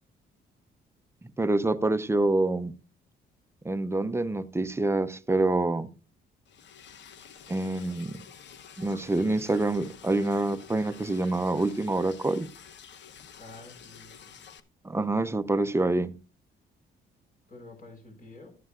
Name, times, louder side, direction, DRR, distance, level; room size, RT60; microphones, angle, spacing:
voice 1, 1.4-2.7 3.6-5.9 7.5-8.2 8.8-12.5 14.8-16.1, right 2 dB, 15° right, 0.7 m, -26 dB
Liquid, 6.5-14.6, left 7 dB, 65° left, 0.9 m, -49 dB
voice 2, 13.4-14.4 17.5-18.5, left 2 dB, 45° left, 5.5 m, -48 dB
13.5 x 9.5 x 2.5 m
cardioid pair, 90°, 20 cm